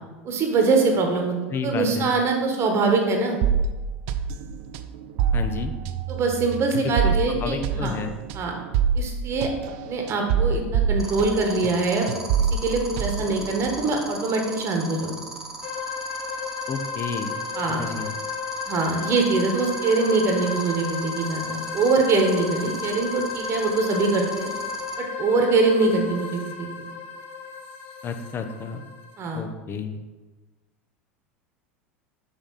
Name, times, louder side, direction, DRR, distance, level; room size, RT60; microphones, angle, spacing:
voice 1, 0.2-1.3 1.6-3.4 6.1-8.0 8.3-8.6 8.9-9.5 9.9-12.1 12.6-15.2 17.5-17.8 18.7-24.5 25.0-26.3 26.6-26.9 29.2-29.4, right 3 dB, 40° right, 2 dB, 1.2 m, -23 dB
voice 2, 1.5-2.1 5.3-5.7 6.8-8.1 16.7-17.4 17.7-18.1 28.0-28.8 29.3-30.0, left 5 dB, 35° left, 7 dB, 0.7 m, -31 dB
sound 1, 3.4-11.8 12.1-14.0, right 6 dB, 60° right, 0.5 m, -26 dB
sound 2, 11.0-24.9, right 2 dB, 10° right, 1.2 m, -38 dB
sound 3, 15.6-29.2, left 5 dB, 70° left, 0.9 m, -33 dB
5.6 x 5.6 x 4.1 m, 1.2 s
hypercardioid pair, 85°, 7 cm